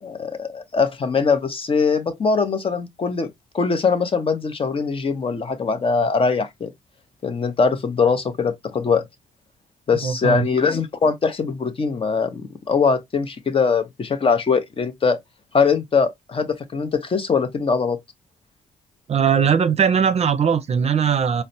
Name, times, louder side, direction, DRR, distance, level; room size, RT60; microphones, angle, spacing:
voice 1, 0.0-6.7 7.2-9.0 9.9-15.2 15.5-18.0, left 5 dB, 40° left, 0.7 m, -22 dB
voice 2, 10.0-10.5 19.1-21.4, right 7 dB, 45° right, 0.5 m, -19 dB
4.0 x 2.1 x 2.6 m
cardioid pair, 70°, 15 cm